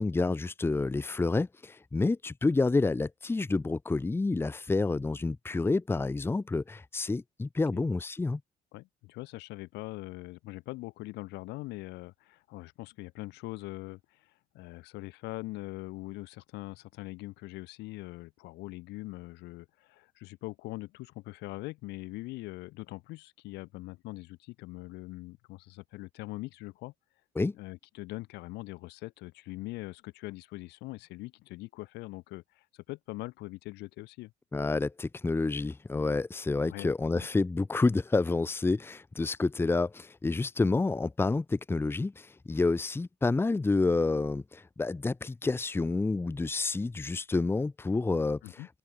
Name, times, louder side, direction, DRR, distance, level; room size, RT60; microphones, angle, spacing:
voice 1, 0.0-8.4 27.4-27.5 34.5-48.6, left 3 dB, 15° left, 0.9 m, -29 dB
voice 2, 8.7-26.9 27.5-34.3 36.6-37.3 48.4-48.7, left 20 dB, 90° left, 3.4 m, -42 dB
open air
cardioid pair, 110°, 17 cm